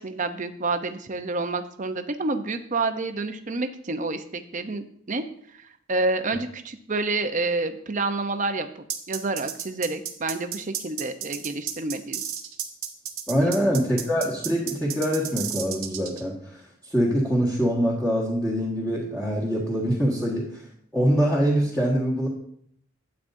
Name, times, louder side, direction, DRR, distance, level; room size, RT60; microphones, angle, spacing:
voice 1, 0.0-5.2 5.6-12.2 13.4-13.5, right 3 dB, 35° right, 8 dB, 0.7 m, -29 dB
sound 1, 8.9-16.2, right 9 dB, 80° right, 1.3 m, -32 dB
voice 2, 13.3-20.6 20.9-22.3, equal, 10° left, -6 dB, 1.6 m, -24 dB
12.0 x 8.7 x 2.6 m, 0.65 s
head